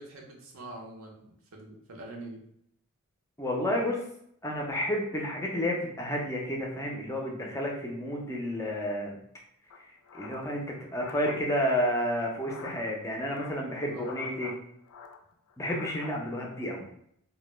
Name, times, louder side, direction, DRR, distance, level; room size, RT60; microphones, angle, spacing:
voice 1, 0.0-2.4 13.8-14.1, right 2 dB, 65° right, 0 dB, 0.6 m, -45 dB
voice 2, 3.4-4.0 4.4-9.2 10.1-14.5 15.6-16.9, equal, 15° left, -1 dB, 0.4 m, -31 dB
sound 1, 9.7-11.4 12.3-12.9 13.3-14.6 14.9-16.2, left 5 dB, 85° left, 0.3 m, -46 dB
2.1 x 2.0 x 3.0 m, 0.72 s
head